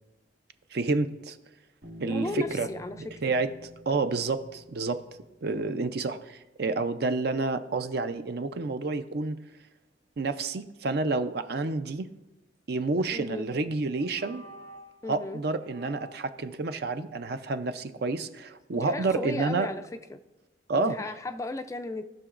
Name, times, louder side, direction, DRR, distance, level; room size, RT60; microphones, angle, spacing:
voice 1, 0.7-1.4 2.0-2.7 3.0-3.5 3.9-5.0 5.4-9.4 10.2-12.1 12.7-14.4 15.1-19.7 20.7-21.0, right 3 dB, 60° right, 10 dB, 0.5 m, -29 dB
Bass guitar, 1.8-5.6, equal, 90° right, 1.7 m, -49 dB
voice 2, 2.0-3.3 5.5-5.8 13.1-13.5 15.0-15.4 18.7-20.2 20.7-22.0, left 2 dB, 15° left, 9 dB, 0.3 m, -36 dB
sound 1, 13.2-13.5 13.9-15.0 15.6-16.4, right 2 dB, 40° right, 1.0 m, -48 dB
17.5 x 6.0 x 2.5 m, 1.0 s
head